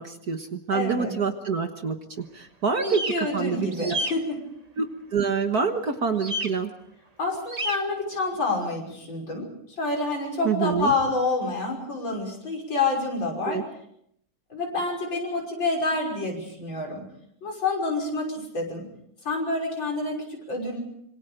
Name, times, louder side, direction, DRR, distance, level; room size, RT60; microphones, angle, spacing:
voice 1, 0.0-4.0 4.8-6.7 10.4-10.9 13.5-13.6, right 5 dB, 50° right, 6 dB, 1.7 m, -27 dB
voice 2, 0.7-1.1 2.7-4.4 7.2-9.4 9.8-13.6 14.5-17.0 17.4-18.9 19.2-20.8, left 3 dB, 60° left, 0 dB, 6.7 m, -28 dB
sound 1, 2.7-3.1 3.7-4.1 6.2-6.5 7.5-7.8, right 1 dB, 20° right, 1.3 m, -30 dB
26.5 x 25.5 x 5.2 m, 0.73 s
omnidirectional pair, 2.4 m